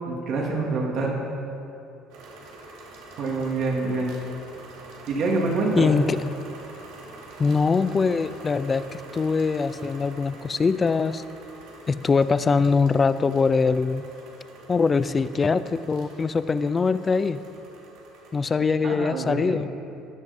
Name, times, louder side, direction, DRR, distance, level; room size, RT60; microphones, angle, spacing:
voice 1, 0.1-1.1 3.2-4.2 5.1-5.9 18.8-19.5, right 3 dB, 55° right, -2 dB, 2.7 m, -26 dB
sound 1, 2.1-18.4, right 2 dB, 80° right, 2.8 m, -45 dB
voice 2, 5.8-6.2 7.4-11.2 11.9-14.1 14.7-17.4 18.3-19.7, left 4 dB, 20° left, 14 dB, 0.4 m, -23 dB
15.5 x 11.0 x 5.4 m, 2.7 s
cardioid pair, 145°, 0 cm